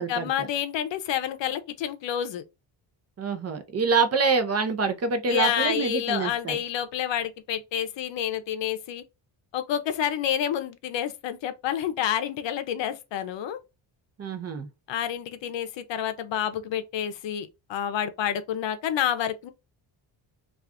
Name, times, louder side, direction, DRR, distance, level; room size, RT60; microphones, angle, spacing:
voice 1, 0.0-2.4 5.3-9.0 9.5-13.6 14.9-19.5, left 10 dB, 70° left, 0.6 m, -29 dB
voice 2, 3.2-6.6 14.2-14.7, right 5 dB, 35° right, 0.6 m, -26 dB
2.5 x 2.3 x 3.5 m
cardioid pair, 90°, 47 cm